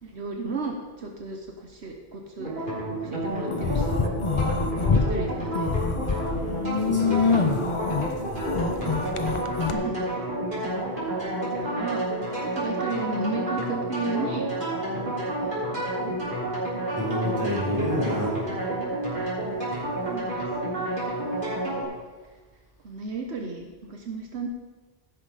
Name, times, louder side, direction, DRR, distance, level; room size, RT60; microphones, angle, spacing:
voice 1, 0.0-2.7 3.0-3.9 4.7-5.7 9.5-10.0 11.5-12.0 12.4-14.5 15.0-16.1 20.0-20.5 21.6-22.0 22.8-24.5, right 3 dB, 75° right, 2 dB, 1.3 m, -34 dB
sound 1, 2.4-21.8, right 1 dB, 50° right, 3.5 m, -30 dB
sound 2, 3.5-5.1 5.5-9.7, left 5 dB, 35° left, 0.6 m, -25 dB
voice 2, 6.7-7.7 16.9-18.4, left 1 dB, 15° right, -5 dB, 3.2 m, -29 dB
16.0 x 6.1 x 4.9 m, 1.4 s
omnidirectional pair, 1.1 m